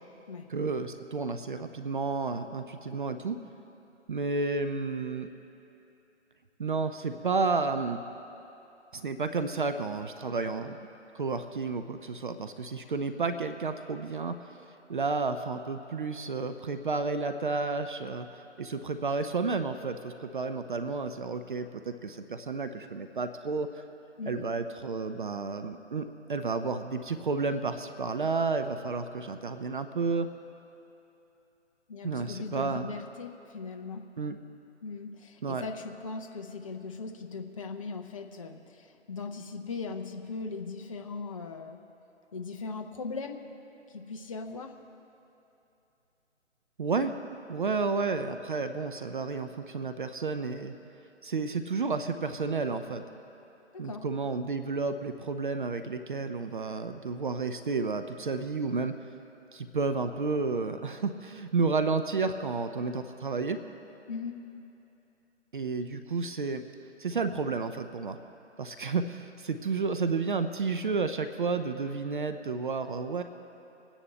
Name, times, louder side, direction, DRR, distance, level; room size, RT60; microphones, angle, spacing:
voice 1, 0.5-3.4 4.1-5.3 6.6-8.0 8.9-10.9 11.1-14.4 14.9-23.7 24.3-30.3 32.0-32.9 34.2-34.4 35.4-35.6 46.8-47.1 47.5-50.7 51.2-53.0 53.8-59.0 59.5-63.6 65.5-66.6 67.0-68.2 68.6-73.2, right 4 dB, 45° right, 8 dB, 0.5 m, -31 dB
voice 2, 31.9-34.0 34.8-41.8 42.3-43.4 43.9-44.7 53.7-54.0 64.1-64.4, left 4 dB, 30° left, 4 dB, 0.6 m, -39 dB
24.5 x 9.9 x 3.3 m, 2.9 s
figure-of-eight pair, 145°, 35 cm